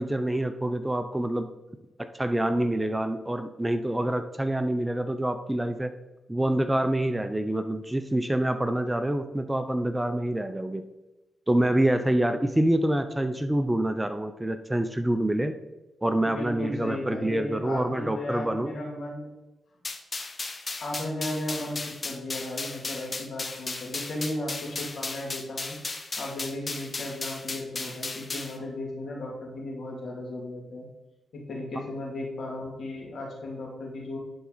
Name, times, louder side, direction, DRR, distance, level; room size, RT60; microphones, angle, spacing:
voice 1, 0.0-1.5 2.1-5.9 6.3-10.8 11.5-15.5 16.0-18.7, right 1 dB, 15° right, 9 dB, 0.6 m, -26 dB
voice 2, 16.2-19.3 20.8-25.8 26.2-30.9 31.3-34.2, left 1 dB, 65° left, -1 dB, 2.5 m, -35 dB
sound 1, 19.8-28.6, left 3 dB, 35° left, 0.9 m, -35 dB
11.0 x 4.3 x 4.0 m, 1.0 s
supercardioid pair, 55°, 0 cm